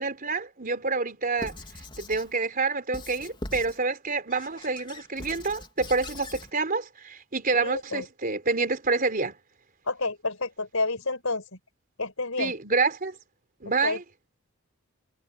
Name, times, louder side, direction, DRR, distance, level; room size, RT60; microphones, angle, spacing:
voice 1, 0.0-1.6 2.0-9.3 12.4-13.2 13.6-14.0, right 4 dB, 45° right, 3.9 m, -28 dB
Squeak / Writing, 1.4-2.3 2.9-3.8 4.3-6.5, left 2 dB, 25° left, 3.7 m, -41 dB
voice 2, 7.5-8.0 9.9-11.5 12.0-12.5 13.8-14.0, left 3 dB, 75° left, 5.3 m, -29 dB
head